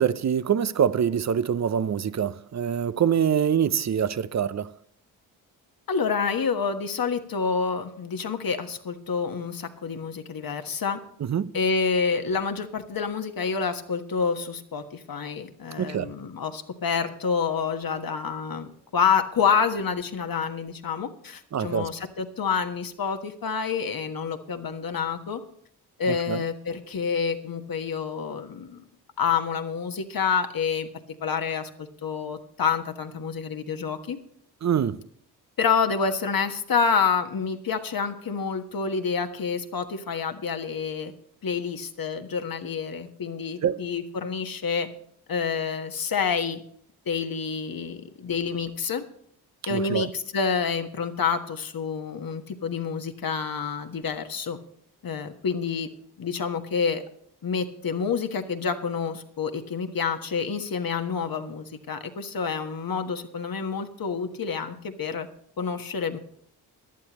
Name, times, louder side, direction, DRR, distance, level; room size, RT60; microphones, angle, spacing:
voice 1, 0.0-4.7 11.3-11.5 15.8-16.1 21.5-21.9 26.3-26.4 34.6-35.0 43.6-43.8 49.7-50.1, right 8 dB, 35° right, 0.7 m, -24 dB
voice 2, 5.9-11.0 11.5-25.4 26.0-28.8 29.2-30.9 31.2-34.2 35.6-41.1 41.4-44.9 45.3-46.6 47.1-49.0 49.7-54.6 55.0-55.9 56.2-57.0 57.4-65.3 65.6-66.2, left 6 dB, 50° left, 1.5 m, -28 dB
17.5 x 11.5 x 3.1 m
hypercardioid pair, 45°, 46 cm